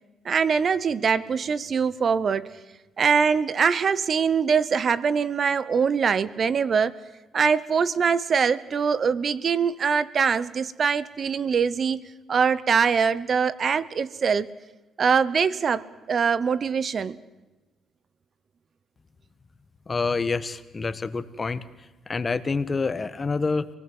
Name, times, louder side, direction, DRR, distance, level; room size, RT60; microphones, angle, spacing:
voice 1, 0.2-2.5 3.0-7.0 7.3-12.0 12.3-14.5 15.0-17.2, right 6 dB, 50° right, 18 dB, 0.9 m, -23 dB
voice 2, 19.9-21.6 22.1-23.7, left 4 dB, 30° left, 14 dB, 1.2 m, -27 dB
27.0 x 19.0 x 7.9 m, 1.1 s
cardioid pair, 90°, 0 cm